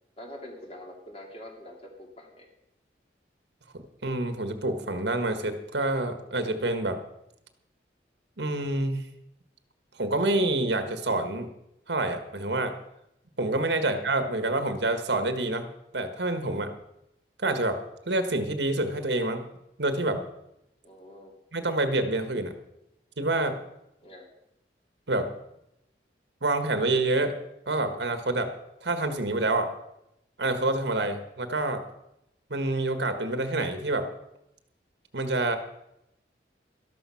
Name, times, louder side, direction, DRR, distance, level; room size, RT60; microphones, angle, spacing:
voice 1, 0.2-2.5 20.8-21.3 24.0-24.3, left 1 dB, 35° left, 1 dB, 2.7 m, -45 dB
voice 2, 3.7-7.0 8.4-9.0 10.0-11.5 11.9-12.7 13.4-15.6 15.9-16.7 17.4-17.8 18.1-19.4 19.8-20.2 21.5-22.5 23.2-23.6 25.1-25.3 26.4-27.3 27.7-28.5 28.8-29.7 30.4-31.8 32.5-34.1 35.1-35.6, right 2 dB, 75° right, 8 dB, 1.5 m, -27 dB
13.0 x 12.5 x 5.8 m, 0.85 s
head